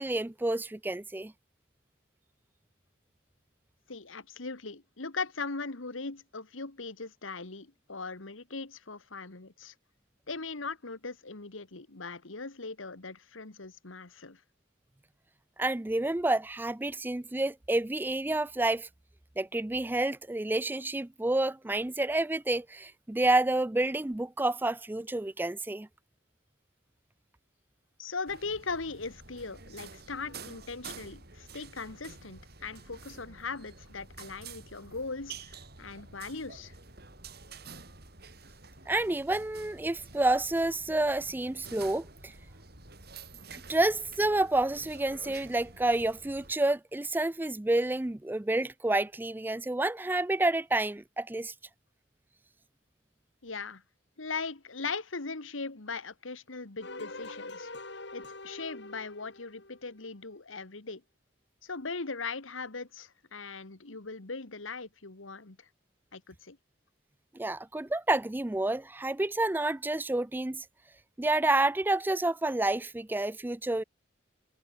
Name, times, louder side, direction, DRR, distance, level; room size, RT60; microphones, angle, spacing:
voice 1, 0.0-1.3 15.6-18.9 19.4-25.9 38.9-42.3 43.5-51.5 67.3-70.6 71.2-73.8, right 2 dB, 10° right, 0.4 m, -29 dB
voice 2, 3.9-9.7 10.3-14.4 28.0-36.8 53.4-53.8 54.2-57.7 58.1-61.0 61.6-65.7 66.1-66.6, left 4 dB, 90° left, 1.8 m, -39 dB
sound 1, 28.3-46.5, right 4 dB, 55° right, 6.1 m, -49 dB
sound 2, 56.8-60.1, left 2 dB, 60° left, 3.7 m, -44 dB
head